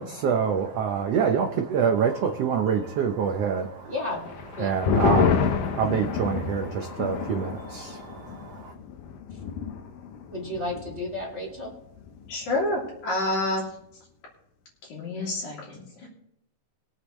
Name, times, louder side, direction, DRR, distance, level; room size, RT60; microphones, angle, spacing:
voice 1, 0.0-3.9 4.6-8.7, right 7 dB, 75° right, 4 dB, 1.4 m, -26 dB
voice 2, 3.8-4.3 4.6-4.7 9.3-9.4 10.3-11.7, left 2 dB, 20° right, 0 dB, 2.3 m, -32 dB
sound 1, 4.3-11.2 11.5-11.6 12.0-12.4, left 6 dB, 80° left, 2.5 m, -29 dB
voice 3, 12.3-13.7 14.8-16.1, left 2 dB, 60° left, -4 dB, 4.3 m, -28 dB
21.5 x 8.1 x 3.2 m, 0.77 s
omnidirectional pair, 3.9 m